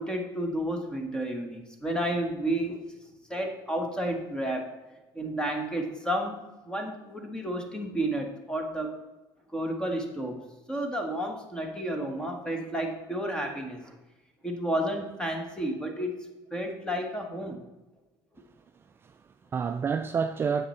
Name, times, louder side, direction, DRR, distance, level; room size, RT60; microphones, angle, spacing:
voice 1, 0.0-2.8 3.3-4.7 5.1-9.0 9.5-10.4 10.7-13.9 14.4-16.3 16.5-17.6, right 1 dB, 10° left, 1.4 m, -31 dB
voice 2, 18.8-20.7, right 6 dB, 25° right, 0.3 m, -30 dB
9.3 x 7.5 x 4.3 m
cardioid pair, 135°, 9 cm